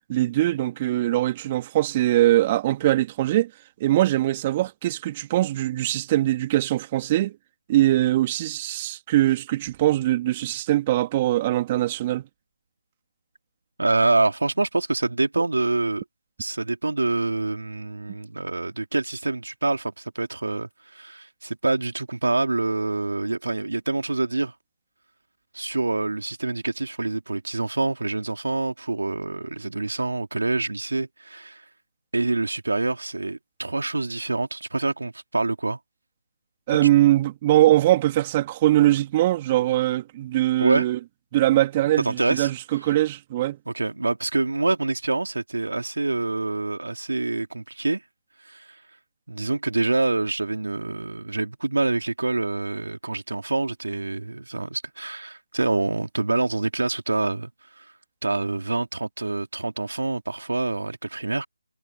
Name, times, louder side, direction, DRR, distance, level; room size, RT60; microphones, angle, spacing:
voice 1, 0.1-3.5 3.8-7.3 7.7-12.2 36.7-41.0 41.3-43.6, right 14 dB, 20° right, 2.6 m, -22 dB
voice 2, 13.8-16.0 16.4-24.5 25.5-31.6 32.1-35.8 36.7-36.8 40.6-40.9 42.0-42.5 42.8-42.9 43.7-48.0 48.4-48.8 49.3-57.5 57.8-57.9 58.2-61.5, right 2 dB, 75° right, 2.7 m, -26 dB
figure-of-eight pair, 160°, 0 cm